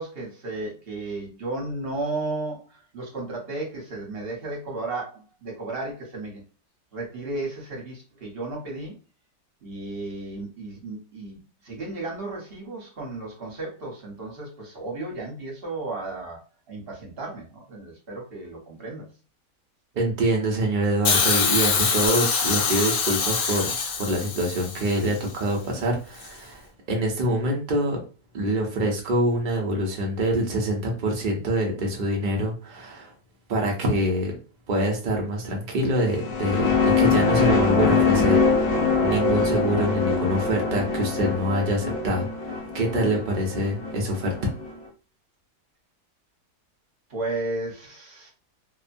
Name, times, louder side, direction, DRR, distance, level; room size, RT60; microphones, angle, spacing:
voice 1, 0.0-6.4 6.9-9.0 9.6-16.4 16.7-19.1 47.1-48.3, right 2 dB, 40° right, -2 dB, 1.0 m, -34 dB
voice 2, 19.9-28.0 28.3-33.1 33.5-34.3 34.7-44.5, right 1 dB, 85° right, 0 dB, 0.4 m, -25 dB
Hiss, 21.0-25.2 26.2-26.3, left 5 dB, 65° left, 0.8 m, -24 dB
sound 1, 36.1-44.7, left 4 dB, 85° left, 0.4 m, -23 dB
2.9 x 2.1 x 2.5 m, 0.34 s
omnidirectional pair, 1.8 m